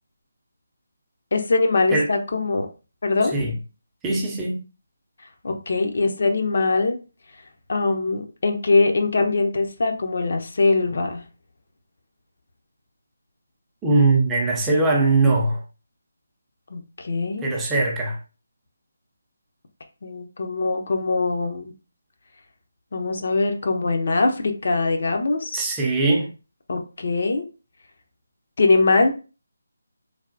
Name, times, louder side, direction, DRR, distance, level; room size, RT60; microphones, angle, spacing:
voice 1, 1.3-2.7 3.0-3.3 5.4-7.0 7.7-11.2 16.7-17.5 20.0-21.7 22.9-25.6 26.7-27.4 28.6-29.1, left 3 dB, 55° left, 0.6 m, -22 dB
voice 2, 4.0-4.6 13.8-15.6 17.4-18.2 25.5-26.3, right 3 dB, 10° right, 0.5 m, -20 dB
3.2 x 2.2 x 2.5 m
figure-of-eight pair, 155°, 0 cm